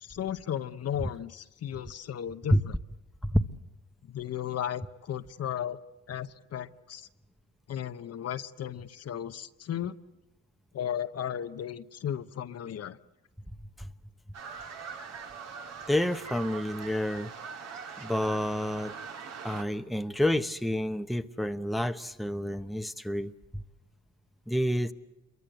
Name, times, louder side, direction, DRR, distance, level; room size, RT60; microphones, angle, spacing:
voice 1, 0.0-2.7 4.1-5.8 6.1-7.1 7.7-9.9 10.7-13.0, left 10 dB, 55° left, 11 dB, 0.9 m, -35 dB
sound 1, 14.3-19.6, right 6 dB, 60° right, 2.3 m, -42 dB
voice 2, 15.9-17.3 18.0-18.9 19.4-23.6 24.5-24.9, equal, ahead, 8 dB, 0.9 m, -29 dB
27.5 x 23.0 x 7.9 m, 0.98 s
cardioid pair, 90°, 30 cm